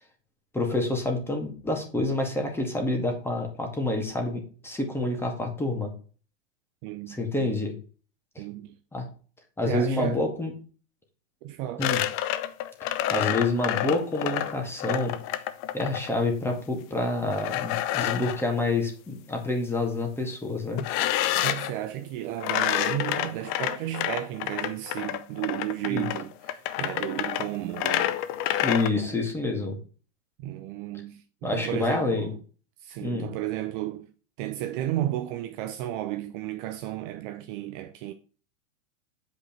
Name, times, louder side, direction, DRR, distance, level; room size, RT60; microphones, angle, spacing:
voice 1, 0.5-5.9 7.1-7.7 8.9-9.1 9.6-10.5 11.8-12.0 12.8-15.2 15.7-20.8 25.8-26.1 28.6-29.8 31.4-32.3 33.0-33.3, left 2 dB, 5° left, 2.2 m, -28 dB
voice 2, 6.8-7.6 8.4-8.7 9.6-10.2 11.4-12.1 21.4-28.2 28.9-29.1 30.4-32.4 32.8-34.1 34.4-38.1, right 13 dB, 40° right, 0.7 m, -33 dB
sound 1, 11.8-16.1 17.3-18.4 20.8-21.7 22.4-28.9, left 12 dB, 35° left, 0.7 m, -28 dB
8.4 x 5.2 x 4.6 m
hypercardioid pair, 135°, 39 cm